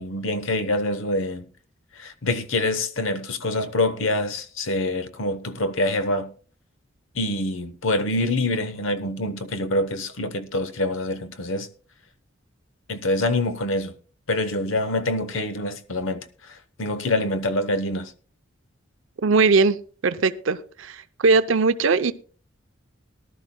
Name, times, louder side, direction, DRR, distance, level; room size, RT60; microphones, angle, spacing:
voice 1, 0.0-1.4 2.0-6.3 7.1-11.7 12.9-13.9 14.3-18.1, left 2 dB, 80° left, 1.0 m, -25 dB
voice 2, 19.2-19.8 20.0-22.1, right 4 dB, 80° right, 0.6 m, -20 dB
19.0 x 12.0 x 2.2 m
head